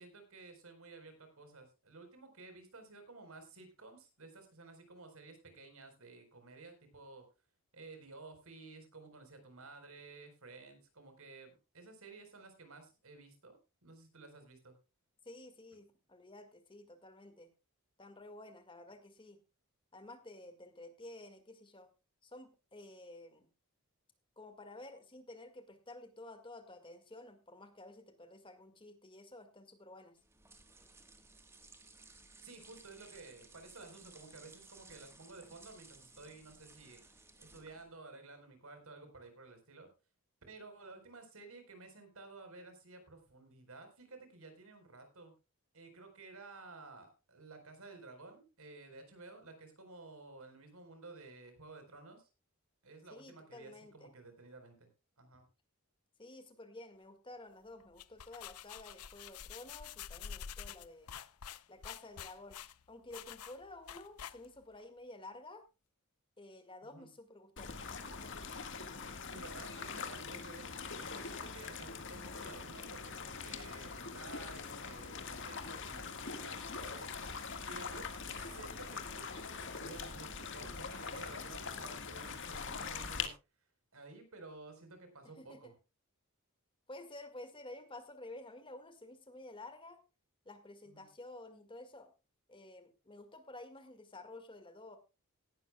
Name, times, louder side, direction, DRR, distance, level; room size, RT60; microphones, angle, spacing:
voice 1, 0.0-7.2 7.7-14.8 32.4-39.9 40.5-45.3 45.7-52.3 52.8-54.9 55.2-55.5 66.8-67.1 69.2-83.3 83.9-85.7 90.9-91.1, right 3 dB, 70° right, 7 dB, 4.2 m, -53 dB
voice 2, 15.2-17.5 18.0-19.4 19.9-21.9 22.2-23.5 24.4-30.2 53.1-54.1 56.2-61.1 61.7-62.6 62.9-65.6 66.4-67.7 85.4-85.7 86.9-90.0 90.5-92.1 92.5-95.0, left 2 dB, 25° left, 8 dB, 1.9 m, -52 dB
sound 1, 30.2-38.0, right 3 dB, 10° right, 1.4 m, -59 dB
sound 2, 57.8-64.7, left 8 dB, 90° left, 0.7 m, -48 dB
sound 3, 67.6-83.3, left 5 dB, 55° left, 1.7 m, -43 dB
17.5 x 12.0 x 2.3 m, 0.29 s
head